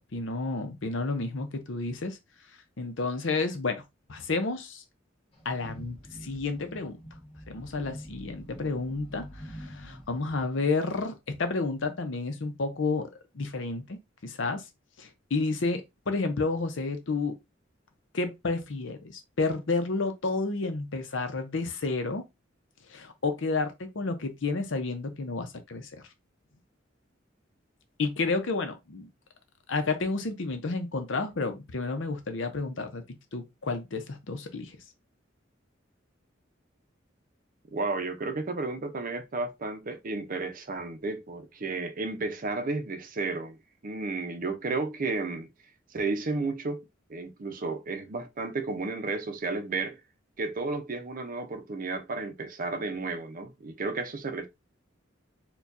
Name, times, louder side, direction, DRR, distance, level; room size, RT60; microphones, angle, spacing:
voice 1, 0.1-2.2 2.8-3.8 4.1-4.8 5.4-7.0 7.5-13.1 13.3-14.6 15.0-17.4 18.1-22.2 22.9-25.9 28.0-29.1 29.7-33.0 33.3-34.8, left 3 dB, 70° left, 0.7 m, -31 dB
sound 1, 5.3-10.4, equal, 30° left, 1.1 m, -46 dB
voice 2, 37.7-43.6 43.8-45.5 45.9-46.8 47.1-50.0 50.4-54.5, right 3 dB, 45° right, 0.6 m, -32 dB
4.4 x 2.3 x 2.6 m
head